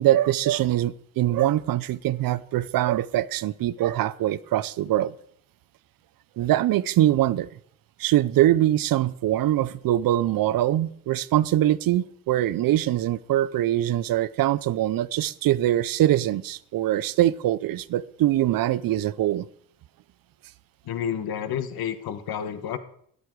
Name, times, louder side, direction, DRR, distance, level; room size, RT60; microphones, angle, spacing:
voice 1, 0.0-5.1 6.4-7.5 8.0-19.5, right 13 dB, 70° right, 0.6 m, -23 dB
voice 2, 20.8-22.8, left 8 dB, 85° left, 1.3 m, -30 dB
13.0 x 12.0 x 4.7 m
cardioid pair, 165°, 36 cm